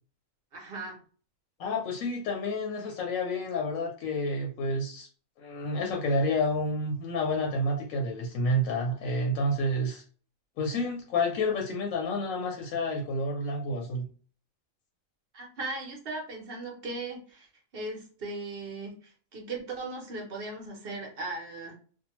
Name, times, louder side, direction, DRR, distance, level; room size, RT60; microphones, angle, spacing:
voice 1, 0.5-1.0 15.3-17.5 17.7-21.7, right 2 dB, 50° right, 0 dB, 0.9 m, -38 dB
voice 2, 1.6-5.1 5.4-10.0 10.6-14.1, left 1 dB, 90° left, 0 dB, 1.0 m, -29 dB
2.6 x 2.2 x 2.9 m, 0.43 s
omnidirectional pair, 1.4 m